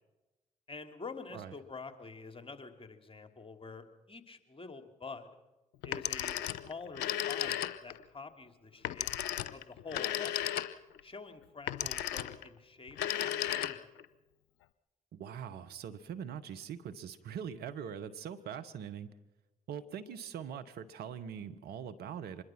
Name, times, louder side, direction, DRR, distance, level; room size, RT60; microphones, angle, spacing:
voice 1, 0.7-5.3 5.8-9.1 9.5-10.4 11.0-13.9, left 4 dB, 30° left, 6 dB, 3.0 m, -47 dB
Telephone, 5.8-8.0 8.8-11.0 11.7-12.5 12.9-14.1, left 11 dB, 75° left, 0.8 m, -35 dB
voice 2, 15.1-19.1 19.7-22.4, right 8 dB, 70° right, 9 dB, 1.2 m, -42 dB
25.0 x 21.0 x 6.1 m, 1.1 s
hypercardioid pair, 40°, 17 cm